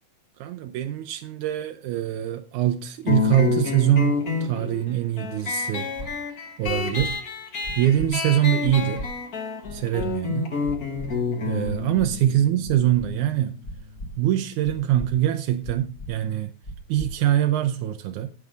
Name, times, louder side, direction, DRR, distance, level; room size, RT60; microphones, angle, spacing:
voice 1, 0.4-5.9 6.6-7.2 7.8-9.1 9.7-10.5 11.5-13.5 14.2-16.5 16.9-18.3, right 12 dB, 80° right, 1.8 m, -23 dB
sound 1, 3.1-14.2, left 5 dB, 75° left, 0.8 m, -29 dB
sound 2, 6.0-6.1 6.6-7.1 7.6-8.1 8.6-9.1 9.6-10.1 10.6-11.1 11.6-12.1 12.6-13.1 13.6-14.1 14.6-15.1 15.6-16.1 16.6-17.1, equal, 35° left, 1.8 m, -36 dB
13.0 x 8.8 x 3.8 m
omnidirectional pair, 4.3 m